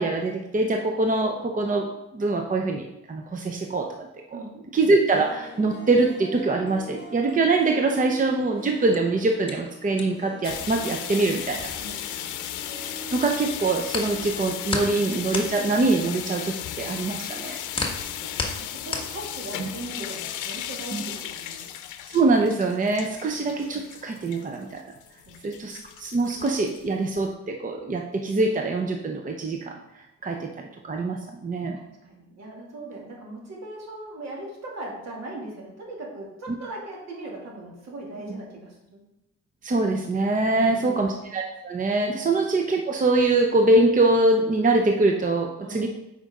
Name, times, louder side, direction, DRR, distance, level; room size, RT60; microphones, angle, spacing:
voice 1, 0.0-1.9 2.1-4.4 4.7-11.7 12.8-17.6 19.6-19.7 20.9-21.0 22.1-24.8 25.4-29.8 30.2-30.5 30.8-31.8 39.6-45.9, right 2 dB, 25° right, 2 dB, 0.8 m, -24 dB
voice 2, 4.3-4.8 11.8-12.6 17.9-21.7 23.2-23.3 25.3-25.4 31.8-39.0 40.5-41.2 42.2-42.4 45.6-45.9, right 2 dB, 60° right, -2 dB, 2.5 m, -39 dB
Harp, 4.9-15.9 16.2-16.3, equal, 35° left, 1.7 m, -43 dB
sound 1, 8.9-12.9 13.2-19.8, left 3 dB, 15° left, 1.5 m, -34 dB
sound 2, 10.4-27.3, left 11 dB, 85° left, 0.6 m, -35 dB
8.1 x 5.2 x 3.7 m, 0.92 s
cardioid pair, 90°, 30 cm